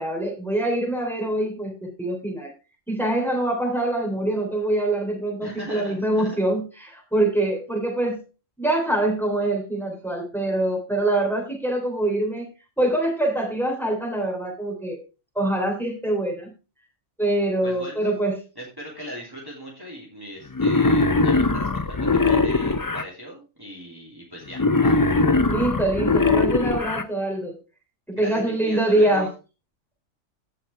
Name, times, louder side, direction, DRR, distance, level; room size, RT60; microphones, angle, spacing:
voice 1, 0.0-2.5 2.9-8.2 8.6-12.5 12.8-15.0 15.3-16.5 17.2-18.4 25.5-27.6 28.1-29.3, right 1 dB, ahead, 0 dB, 3.3 m, -24 dB
voice 2, 5.4-6.4 17.6-18.1 18.6-25.0 28.1-29.3, equal, 15° right, -3 dB, 2.8 m, -39 dB
Wild animals, 20.5-23.0 24.5-27.0, left 3 dB, 30° left, 0.3 m, -20 dB
16.0 x 5.8 x 3.3 m, 0.31 s
omnidirectional pair, 1.4 m